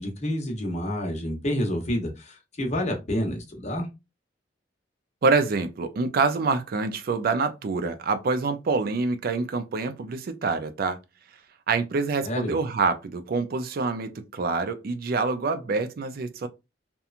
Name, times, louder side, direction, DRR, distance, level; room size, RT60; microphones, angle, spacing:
voice 1, 0.0-3.9 12.2-12.6, left 1 dB, 40° left, 0.8 m, -29 dB
voice 2, 5.2-11.0 11.7-16.5, right 4 dB, 55° right, 0.4 m, -26 dB
2.9 x 2.2 x 2.4 m
head